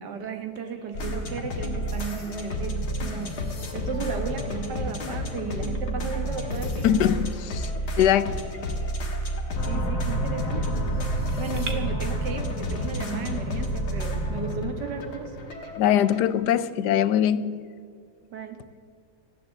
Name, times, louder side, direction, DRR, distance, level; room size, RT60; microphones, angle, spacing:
voice 1, 0.0-3.4 3.7-7.0 9.7-11.1 11.4-15.4 18.2-18.6, right 5 dB, 85° right, 6 dB, 1.9 m, -35 dB
Bird vocalization bird call bird song, 0.6-11.7, right 4 dB, 50° right, 1.7 m, -49 dB
sound 1, 0.9-16.3, equal, 70° left, 2.1 m, -31 dB
voice 2, 6.8-7.7 8.0-8.3 15.8-17.6, left 10 dB, 90° left, 15 dB, 1.2 m, -22 dB
sound 2, 9.6-15.9, right 1 dB, 55° left, 1.6 m, -33 dB
14.5 x 9.7 x 7.6 m, 2.1 s
omnidirectional pair, 1.8 m